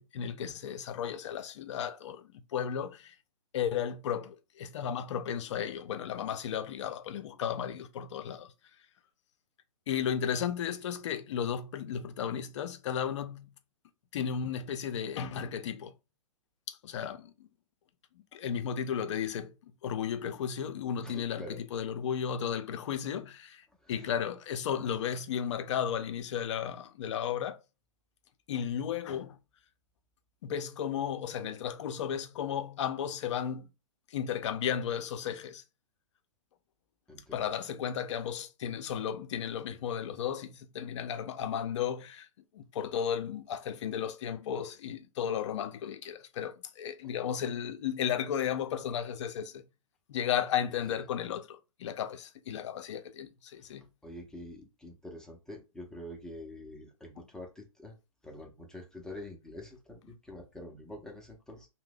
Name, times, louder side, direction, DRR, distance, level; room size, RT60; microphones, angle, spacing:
voice 1, 0.0-3.1 3.5-8.5 9.9-13.5 14.1-15.9 16.7-17.3 18.3-23.6 23.9-27.6 28.5-29.4 30.4-33.7 34.1-35.6 37.3-42.3 42.5-49.6 50.1-53.8, left 8 dB, 55° left, 0.5 m, -34 dB
voice 2, 21.0-21.6 23.8-24.1 37.1-37.4 54.0-57.9 58.2-61.7, left 1 dB, 5° left, 0.5 m, -46 dB
2.7 x 2.1 x 3.7 m
hypercardioid pair, 130°, 18 cm